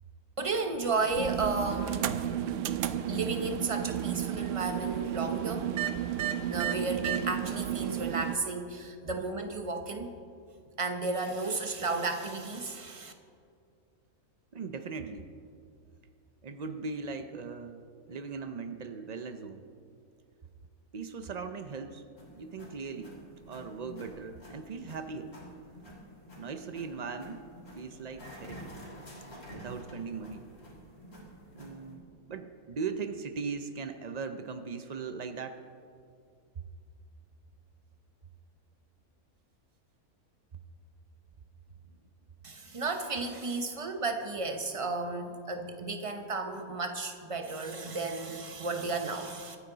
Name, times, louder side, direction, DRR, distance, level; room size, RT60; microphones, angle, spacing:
voice 1, 0.4-2.5 3.1-5.7 6.5-10.1 10.8-13.1 42.4-49.6, right 3 dB, 30° right, 6 dB, 0.8 m, -33 dB
sound 1, 1.0-8.4, right 10 dB, 65° right, 0.8 m, -32 dB
voice 2, 14.5-15.3 16.4-17.8 18.1-19.7 20.9-22.0 22.4-23.2 23.5-25.3 26.4-27.4 27.8-28.7 29.5-30.4 31.6-35.6, right 5 dB, 85° right, 8 dB, 0.3 m, -39 dB
sound 2, 22.2-32.0, equal, 70° left, 3.7 m, -50 dB
24.0 x 9.4 x 3.9 m, 2.3 s
omnidirectional pair, 1.6 m